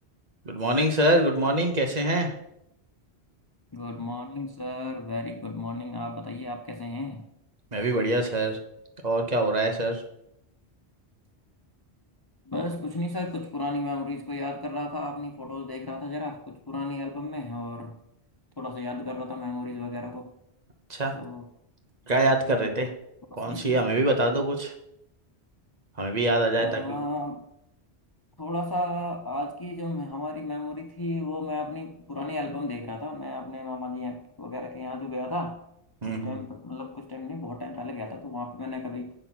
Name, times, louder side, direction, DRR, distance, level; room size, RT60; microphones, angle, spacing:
voice 1, 0.5-2.3 7.7-8.6 9.0-10.0 20.9-21.1 22.1-22.9 23.4-24.7 26.0-27.0 36.0-36.4, right 1 dB, 40° right, 5 dB, 1.1 m, -24 dB
voice 2, 3.7-7.3 12.4-18.0 18.6-20.3 21.1-21.5 23.3-24.0 26.6-27.4 28.4-35.6 36.0-39.1, left 2 dB, 30° left, 5 dB, 0.5 m, -34 dB
7.8 x 5.7 x 6.0 m, 0.78 s
omnidirectional pair, 1.1 m